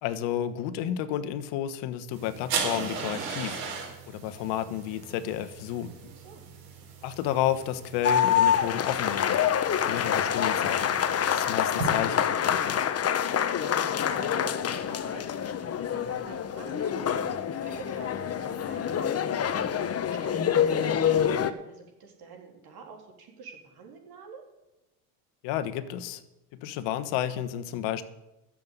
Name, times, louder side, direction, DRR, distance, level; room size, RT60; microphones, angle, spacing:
voice 1, 0.0-3.6 4.1-5.9 7.0-11.0 11.3-12.9 25.4-26.2 26.5-28.0, left 11 dB, 65° left, 12 dB, 1.3 m, -31 dB
sound 1, 2.1-11.9, right 5 dB, 80° right, 4.7 m, -38 dB
sound 2, 8.0-21.5, left 8 dB, 30° left, 1.0 m, -26 dB
voice 2, 13.5-24.5, right 5 dB, 50° right, 2 dB, 3.8 m, -47 dB
12.0 x 7.6 x 8.3 m, 0.97 s
supercardioid pair, 90°, 47 cm